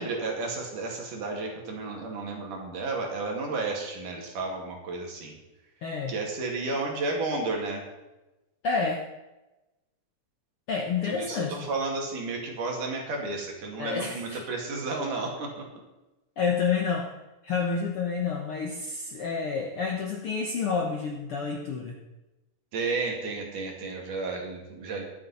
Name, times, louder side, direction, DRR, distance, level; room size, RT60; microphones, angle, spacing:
voice 1, 0.0-5.4 6.1-7.8 11.0-15.6 22.7-25.0, right 3 dB, 65° right, 0 dB, 3.9 m, -32 dB
voice 2, 5.8-6.1 8.6-9.0 10.7-11.6 13.8-14.4 16.4-17.1 17.4-22.0, left 5 dB, 60° left, 1 dB, 1.5 m, -29 dB
22.0 x 8.0 x 4.3 m, 1.0 s
omnidirectional pair, 4.0 m